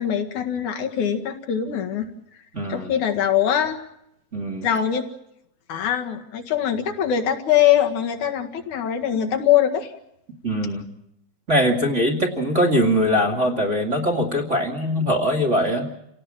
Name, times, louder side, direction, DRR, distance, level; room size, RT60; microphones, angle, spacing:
voice 1, 0.0-2.1 2.7-3.8 4.6-5.0 5.7-9.9, left 10 dB, 60° left, 4 dB, 3.1 m, -22 dB
voice 2, 2.5-2.9 4.3-4.7 10.4-10.9 11.5-15.9, equal, 25° right, 0 dB, 1.9 m, -22 dB
28.5 x 18.5 x 7.5 m, 0.82 s
omnidirectional pair, 4.3 m